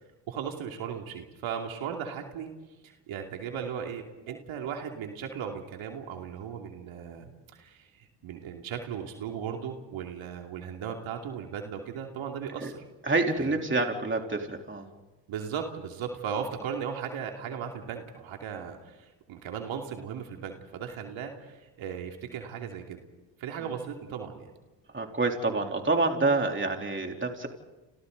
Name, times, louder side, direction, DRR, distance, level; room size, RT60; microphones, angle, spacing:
voice 1, 0.3-2.5 2.8-12.8 13.4-13.6 15.3-23.0 23.4-24.5, right 7 dB, 75° right, 3 dB, 2.8 m, -37 dB
voice 2, 13.1-14.8 24.9-27.5, right 3 dB, 25° right, 2 dB, 3.6 m, -27 dB
29.5 x 28.0 x 4.0 m, 1.1 s
supercardioid pair, 65°, 47 cm